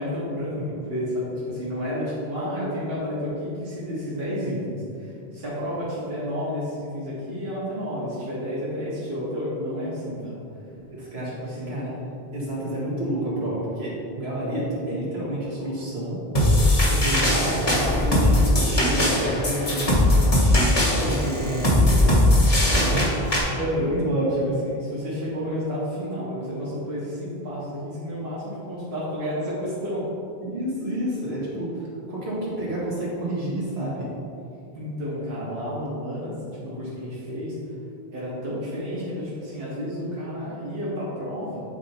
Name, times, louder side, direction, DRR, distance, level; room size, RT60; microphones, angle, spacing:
voice 1, 0.0-10.4 11.4-11.7 16.9-17.5 21.0-21.2 23.5-24.0 24.4-30.0 34.7-37.5 38.1-41.6, equal, 70° right, -8 dB, 1.8 m, -31 dB
voice 2, 10.9-11.9 12.3-16.2 17.1-22.2 22.7-23.4 23.7-24.5 30.4-34.1, right 1 dB, 85° right, -7 dB, 2.0 m, -29 dB
sound 1, 16.4-23.4, left 1 dB, 35° left, 1.2 m, -20 dB
8.6 x 4.0 x 4.3 m, 2.6 s
omnidirectional pair, 1.0 m